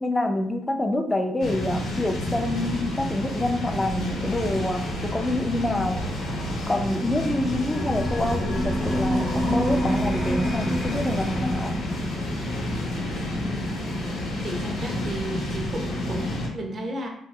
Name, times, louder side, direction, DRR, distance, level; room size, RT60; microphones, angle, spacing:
voice 1, 0.0-6.0 6.7-11.7, left 1 dB, 15° left, 4 dB, 0.3 m, -27 dB
sound 1, 1.4-16.5, left 1 dB, 80° left, 0.7 m, -29 dB
sound 2, 7.7-12.4, equal, 45° left, 0.9 m, -28 dB
voice 2, 14.4-17.1, right 1 dB, 50° right, 2 dB, 0.6 m, -34 dB
2.7 x 2.2 x 2.3 m, 0.69 s
cardioid pair, 90°, 0 cm